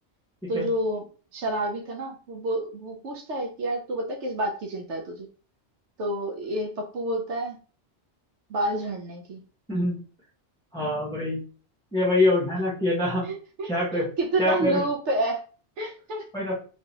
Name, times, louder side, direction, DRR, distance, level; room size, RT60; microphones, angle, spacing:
voice 1, 0.5-1.0 1.3-5.3 6.0-7.6 8.5-9.4 13.2-13.7 14.2-15.4 15.8-16.3, right 1 dB, 80° right, 2 dB, 1.0 m, -29 dB
voice 2, 9.7-10.0 10.7-11.4 11.9-13.3 13.6-14.1 14.4-14.8 16.3-16.5, left 1 dB, 5° left, -7 dB, 0.9 m, -24 dB
3.3 x 2.8 x 2.7 m, 0.37 s
omnidirectional pair, 1.2 m